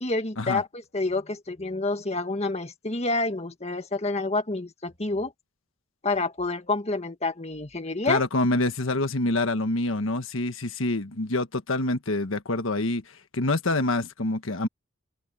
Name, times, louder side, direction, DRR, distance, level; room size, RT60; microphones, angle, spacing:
voice 1, 0.0-5.3 6.0-8.2, left 3 dB, 30° left, 1.7 m, -28 dB
voice 2, 8.1-14.7, left 2 dB, 85° left, 1.4 m, -26 dB
open air
head